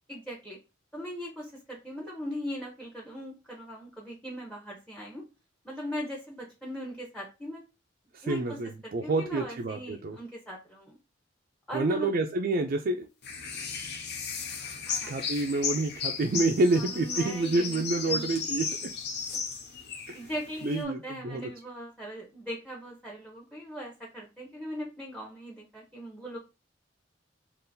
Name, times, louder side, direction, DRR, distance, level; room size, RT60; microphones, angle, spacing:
voice 1, 0.1-0.6 0.9-5.2 5.6-7.6 8.2-11.0 11.7-12.1 14.9-15.1 16.7-18.2 20.1-26.4, equal, 5° left, 0.7 m, -39 dB
voice 2, 8.1-10.2 11.7-13.1 15.0-18.9 20.1-20.3 20.6-21.5, right 2 dB, 50° right, 0.4 m, -28 dB
sound 1, 13.2-20.8, left 5 dB, 60° left, 0.7 m, -35 dB
3.7 x 2.5 x 2.6 m
head